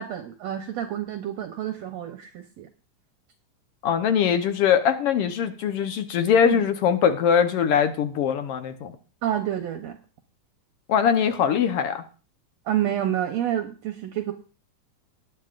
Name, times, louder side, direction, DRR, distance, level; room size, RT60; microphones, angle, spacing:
voice 1, 0.0-2.7 6.4-6.6 9.2-10.0 12.7-14.3, right 11 dB, 70° right, 5 dB, 1.9 m, -28 dB
voice 2, 3.8-8.9 10.9-12.0, left 8 dB, 65° left, 8 dB, 1.6 m, -22 dB
19.0 x 9.5 x 2.5 m, 0.35 s
omnidirectional pair, 3.6 m